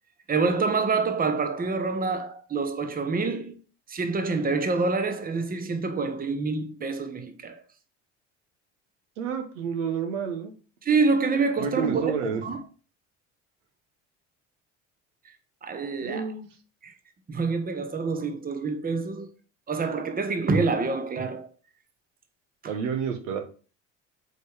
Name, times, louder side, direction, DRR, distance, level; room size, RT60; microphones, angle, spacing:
voice 1, 0.3-3.6 3.9-7.6 10.8-12.2 12.4-12.6 15.6-16.3 16.8-16.9 17.3-19.3 19.7-21.5 22.6-22.7, right 4 dB, 25° right, 1.0 m, -26 dB
voice 2, 9.2-10.5 11.6-12.4 16.0-16.5 22.7-23.4, right 6 dB, 80° right, 1.1 m, -29 dB
7.8 x 3.5 x 3.4 m
hypercardioid pair, 65°, 37 cm